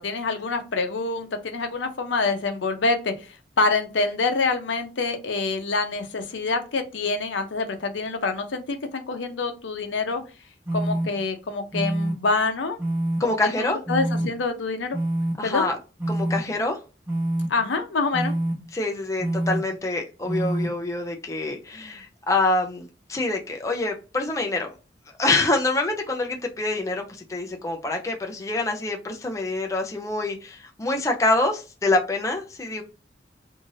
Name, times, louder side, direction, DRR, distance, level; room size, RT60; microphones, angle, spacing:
voice 1, 0.0-10.2 10.7-12.8 13.2-15.0 15.4-15.7 17.5-18.3, left 3 dB, 85° left, 6 dB, 0.6 m, -26 dB
sound 1, 10.7-11.1 11.7-12.1 12.8-13.2 13.9-14.3 14.9-15.3 16.0-16.4 17.1-17.5 18.1-18.5 19.2-19.6 20.3-20.7, right 1 dB, 15° right, 0.8 m, -25 dB
voice 2, 13.2-13.8 15.4-15.8 16.1-16.8 18.7-24.7 25.2-32.8, left 2 dB, 15° left, 3 dB, 0.4 m, -26 dB
2.6 x 2.4 x 3.0 m, 0.32 s
head